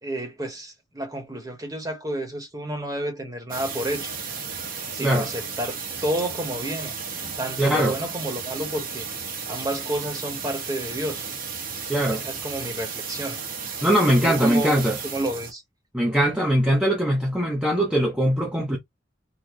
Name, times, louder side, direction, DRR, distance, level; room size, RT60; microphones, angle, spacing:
voice 1, 0.0-4.1 4.9-6.9 7.4-9.1 9.5-11.2 12.1-13.4 14.2-15.6, right 1 dB, 20° right, 1.2 m, -30 dB
sound 1, 3.5-15.5, right 5 dB, 50° right, 1.0 m, -34 dB
voice 2, 7.6-7.9 11.9-12.2 13.8-15.0 15.9-18.8, equal, 5° right, 0.7 m, -21 dB
3.8 x 2.1 x 3.1 m
head